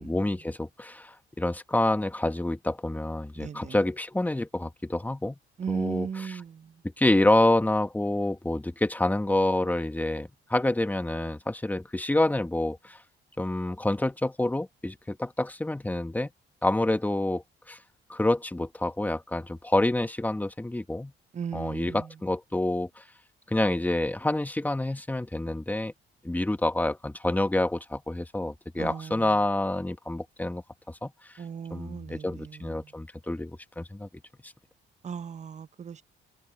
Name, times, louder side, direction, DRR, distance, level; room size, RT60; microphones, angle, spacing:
voice 1, 0.0-5.4 5.7-6.4 7.0-13.0 13.4-16.3 16.6-17.8 18.1-21.1 21.5-23.0 23.5-25.9 26.2-31.3 31.7-34.1, left 1 dB, 10° left, 1.1 m, -27 dB
voice 2, 3.4-3.8 5.6-6.7 21.3-22.1 28.8-29.3 31.4-32.9 35.0-36.0, right 7 dB, 35° right, 0.7 m, -37 dB
cardioid pair, 90°, 20 cm